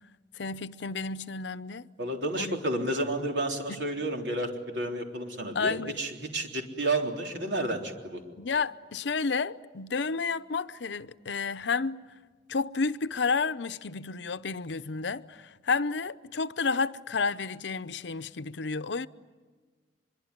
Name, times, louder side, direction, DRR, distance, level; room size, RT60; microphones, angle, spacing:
voice 1, 0.3-1.9 2.4-2.6 3.7-3.8 5.5-6.0 8.4-12.0 12.5-19.1, left 4 dB, 85° left, 0.7 m, -31 dB
voice 2, 2.0-8.2, right 1 dB, 85° right, 3.6 m, -31 dB
24.5 x 23.5 x 9.7 m
head